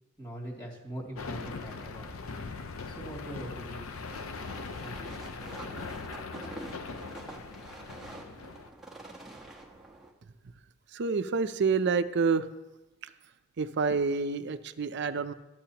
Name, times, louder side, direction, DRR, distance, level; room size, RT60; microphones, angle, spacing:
voice 1, 0.2-2.1 2.8-3.9 4.8-5.2, right 1 dB, 20° left, -3 dB, 2.4 m, -42 dB
sound 1, 1.2-8.7, left 4 dB, 85° left, 0.7 m, -40 dB
sound 2, 4.1-10.1, right 2 dB, ahead, 1.2 m, -46 dB
voice 2, 10.9-12.5 13.0-13.1 13.6-15.3, right 5 dB, 55° right, 11 dB, 0.5 m, -28 dB
13.0 x 9.0 x 2.9 m, 1.0 s
head